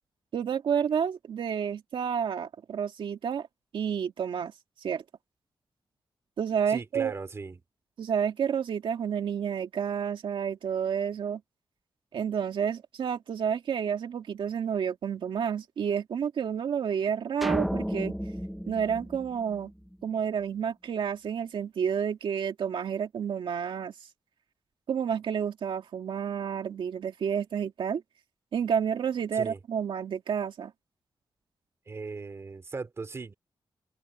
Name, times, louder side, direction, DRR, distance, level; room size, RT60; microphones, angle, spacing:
voice 1, 0.3-3.5 3.7-4.5 4.8-5.0 6.4-7.2 8.0-11.4 12.1-18.2 18.7-19.7 20.0-23.9 24.9-28.0 28.5-30.7, right 7 dB, 90° right, 2.2 m, -30 dB
voice 2, 6.7-7.6 29.3-29.6 31.9-33.3, right 4 dB, 30° right, 3.7 m, -38 dB
sound 1, 17.4-19.9, equal, ahead, 1.2 m, -33 dB
wide cardioid pair, 165°, 8 cm